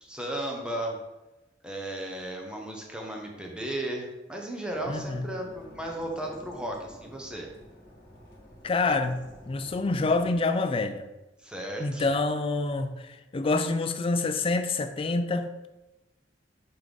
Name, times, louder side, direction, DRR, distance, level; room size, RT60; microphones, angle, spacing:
voice 1, 0.0-1.0 1.6-7.5 11.4-12.0, right 1 dB, 5° right, 1.0 m, -35 dB
sound 1, 4.7-10.4, equal, 50° left, 1.9 m, -49 dB
voice 2, 4.9-5.2 8.6-9.2 9.5-11.0 11.8-15.7, left 3 dB, 30° left, 0.4 m, -27 dB
5.4 x 4.8 x 4.0 m
head